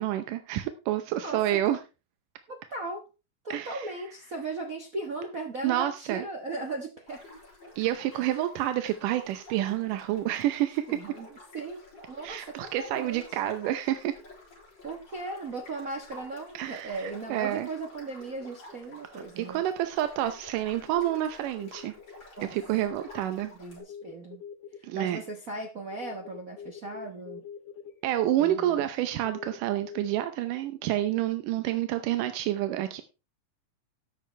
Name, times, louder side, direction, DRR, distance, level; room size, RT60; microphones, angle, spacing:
voice 1, 0.0-1.8 3.5-3.9 5.6-6.2 7.8-11.0 12.2-14.1 16.5-17.7 19.4-21.9 22.4-23.5 24.8-25.2 28.0-33.0, right 13 dB, 90° right, 9 dB, 2.4 m, -29 dB
voice 2, 1.2-1.8 2.5-3.1 3.4-7.2 8.1-8.5 10.9-11.3 11.5-11.8 12.1-13.4 14.8-19.6 22.4-22.5 23.5-24.4 24.9-27.4 28.4-28.9, right 3 dB, 70° right, 2 dB, 0.7 m, -37 dB
sound 1, 7.1-23.8, left 1 dB, 35° left, 6.1 m, -51 dB
sound 2, 20.9-22.4 22.7-23.2 23.8-30.2 30.9-31.2, left 7 dB, 90° left, 2.6 m, -45 dB
13.0 x 9.8 x 3.3 m, 0.29 s
omnidirectional pair, 3.6 m